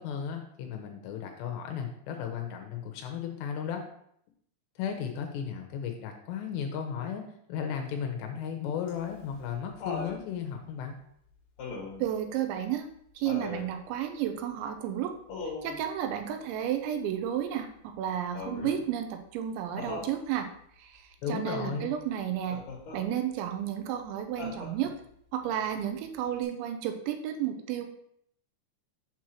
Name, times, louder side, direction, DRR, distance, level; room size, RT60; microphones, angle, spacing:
voice 1, 0.0-3.8 4.8-7.2 7.5-10.9 21.2-21.9, left 7 dB, 80° left, 3 dB, 2.7 m, -35 dB
Laughter, 8.9-10.2 11.6-12.1 13.2-13.7 15.3-15.8 18.3-18.8 19.8-20.1 22.5-23.0 24.4-25.0 26.4-26.5, left 3 dB, 50° left, 2.4 m, -38 dB
voice 2, 12.0-12.9 13.2-15.1 15.6-20.5 20.8-22.6 22.9-24.9 25.3-27.9, right 10 dB, 85° right, 6 dB, 2.9 m, -32 dB
7.4 x 6.2 x 2.9 m, 0.69 s
omnidirectional pair, 5.3 m